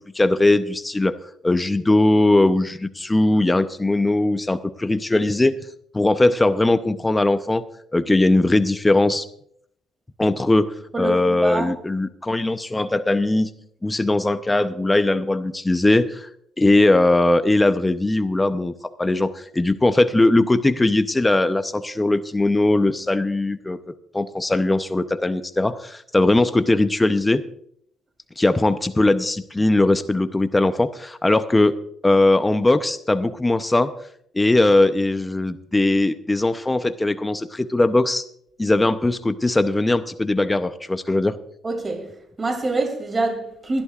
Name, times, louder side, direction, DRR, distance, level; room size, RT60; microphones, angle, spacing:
voice 1, 0.1-1.2 1.4-5.5 5.9-7.6 7.9-9.2 10.2-13.5 13.8-16.3 16.6-18.7 19.0-27.4 28.4-31.8 32.0-33.9 34.3-38.2 38.6-41.4, left 2 dB, 15° left, 0.7 m, -19 dB
voice 2, 10.9-11.7 41.6-42.1 42.4-43.8, right 2 dB, 30° right, 2.6 m, -25 dB
23.0 x 11.0 x 2.4 m
cardioid pair, 90°, 0 cm